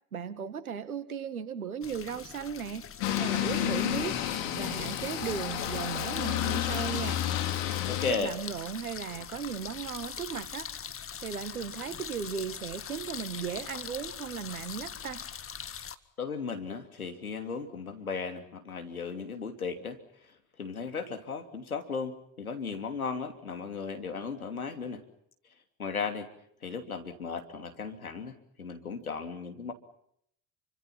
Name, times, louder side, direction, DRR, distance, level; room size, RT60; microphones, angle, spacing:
voice 1, 0.1-2.8 3.2-4.2 4.5-7.2 8.1-10.7 11.2-15.2, right 7 dB, 85° right, 14 dB, 1.9 m, -36 dB
sound 1, 1.8-16.0, left 8 dB, 30° left, 1.9 m, -42 dB
sound 2, 3.0-8.1, left 11 dB, 65° left, 4.4 m, -30 dB
voice 2, 7.9-8.3 16.2-25.0 25.8-26.3 26.6-29.7, left 5 dB, 90° left, 6 dB, 3.0 m, -36 dB
29.5 x 25.0 x 5.8 m, 0.72 s
figure-of-eight pair, 65°, 42 cm